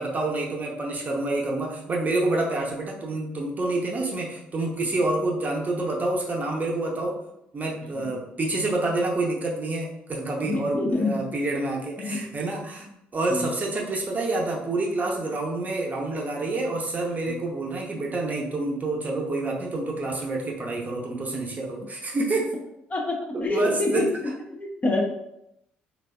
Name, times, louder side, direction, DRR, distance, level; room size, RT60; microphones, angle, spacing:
voice 1, 0.0-7.2 7.5-12.9 13.1-22.5 23.3-24.1, right 2 dB, 30° right, -2 dB, 0.7 m, -28 dB
voice 2, 10.4-11.2 12.0-12.3 13.3-13.5 17.3-17.4 22.9-24.1 24.5-25.0, left 2 dB, 30° left, 1 dB, 0.6 m, -26 dB
3.3 x 2.3 x 2.2 m, 0.81 s
hypercardioid pair, 55°, 5 cm